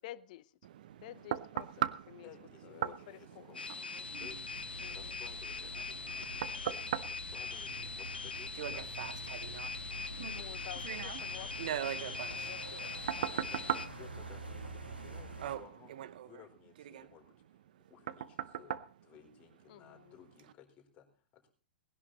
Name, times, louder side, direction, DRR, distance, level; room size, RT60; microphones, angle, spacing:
voice 1, 0.0-0.5 1.0-2.3 2.6-4.1 4.8-5.2 10.3-13.5 19.7-20.2, left 15 dB, 50° left, 0.8 m, -52 dB
sound 1, 0.6-19.9 20.4-20.5, right 11 dB, 55° right, 0.7 m, -41 dB
voice 2, 2.2-4.4 4.9-9.6 10.3-10.5 13.3-15.9 16.2-17.6 17.9-18.8 19.0-21.5, left 9 dB, 30° left, 4.5 m, -58 dB
sound 2, 3.5-13.9, left 5 dB, 85° left, 1.3 m, -42 dB
sound 3, 4.0-15.6, right 1 dB, 85° right, 2.9 m, -47 dB
19.5 x 11.0 x 4.1 m
figure-of-eight pair, 110°, 5 cm